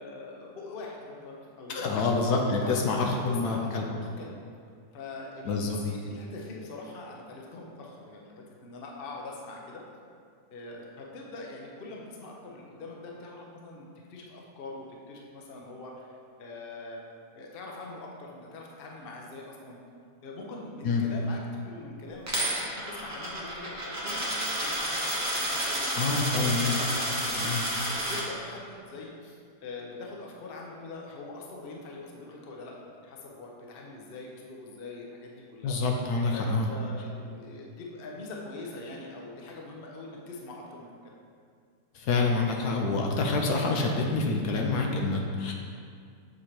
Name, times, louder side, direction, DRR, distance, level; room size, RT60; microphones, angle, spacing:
voice 1, 0.0-2.1 2.6-4.4 4.9-9.8 10.5-17.1 17.3-19.8 20.2-35.8 36.3-41.1, left 2 dB, 50° left, -1 dB, 0.7 m, -43 dB
voice 2, 1.7-3.8 5.5-5.8 20.8-21.0 25.9-26.7 27.3-27.6 35.6-36.7 41.9-45.5, left 3 dB, 70° left, 1 dB, 1.1 m, -27 dB
Coin (dropping), 22.3-28.2, right 1 dB, 15° right, 0.6 m, -30 dB
7.2 x 3.2 x 4.3 m, 2.2 s
omnidirectional pair, 1.8 m